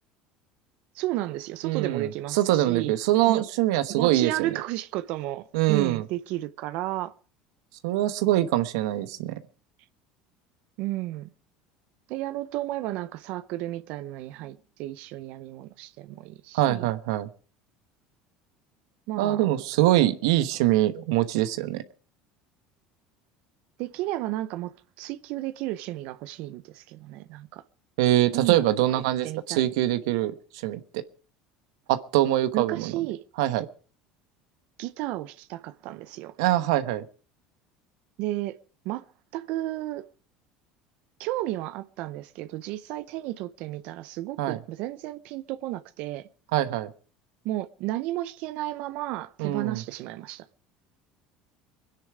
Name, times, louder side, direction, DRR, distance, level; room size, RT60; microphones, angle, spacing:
voice 1, 0.9-2.9 3.3-3.4 3.9-7.1 10.8-11.3 12.1-16.9 19.1-19.5 23.8-27.6 28.3-28.6 28.9-29.7 32.5-33.2 34.8-36.3 38.2-38.6 38.8-39.0 39.3-40.1 41.2-46.3 47.4-50.5, right 15 dB, 65° right, 0.8 m, -33 dB
voice 2, 1.6-4.5 5.5-6.0 7.8-9.3 16.5-17.3 19.2-21.8 28.0-30.3 30.6-30.8 31.9-32.9 33.4-33.7 36.4-37.0 44.4-44.6 46.5-46.9 49.4-49.8, right 14 dB, 85° right, 1.1 m, -23 dB
23.0 x 10.0 x 4.9 m
supercardioid pair, 125°, 3 cm